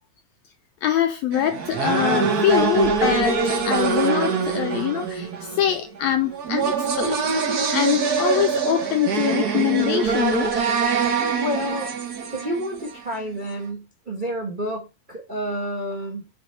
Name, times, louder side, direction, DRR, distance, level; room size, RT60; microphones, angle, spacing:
voice 1, 0.8-7.4 7.7-10.6, left 11 dB, 90° left, 1.5 m, -24 dB
sound 1, 1.3-13.2, right 5 dB, 85° right, 0.8 m, -24 dB
voice 2, 11.0-12.0 12.3-16.3, equal, 65° right, 0.5 m, -30 dB
8.8 x 4.0 x 3.2 m
omnidirectional pair, 3.6 m